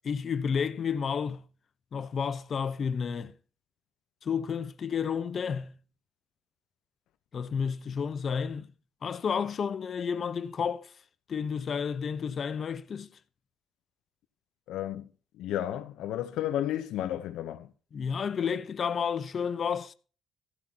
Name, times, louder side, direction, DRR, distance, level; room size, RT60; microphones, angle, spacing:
voice 1, 0.0-1.4 1.9-3.3 4.2-5.7 7.3-8.7 9.0-10.9 11.3-13.1 17.9-19.9, left 6 dB, 50° left, 1.0 m, -31 dB
voice 2, 14.7-15.1 15.3-17.7, left 12 dB, 90° left, 0.9 m, -32 dB
14.5 x 11.5 x 2.9 m
cardioid pair, 90°, 0 cm